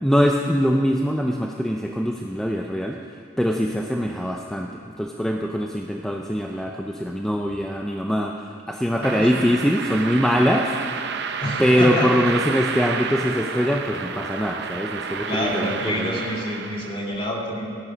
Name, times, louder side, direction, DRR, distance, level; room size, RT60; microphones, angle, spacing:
voice 1, 0.0-3.0 3.4-11.1 11.6-16.2, equal, 5° left, 1 dB, 0.6 m, -23 dB
voice 2, 8.9-9.5 11.4-12.1 15.3-17.8, equal, 30° left, -2 dB, 2.5 m, -28 dB
sound 1, 9.0-17.1, right 6 dB, 60° right, 0.8 m, -30 dB
15.5 x 11.0 x 6.2 m, 2.3 s
head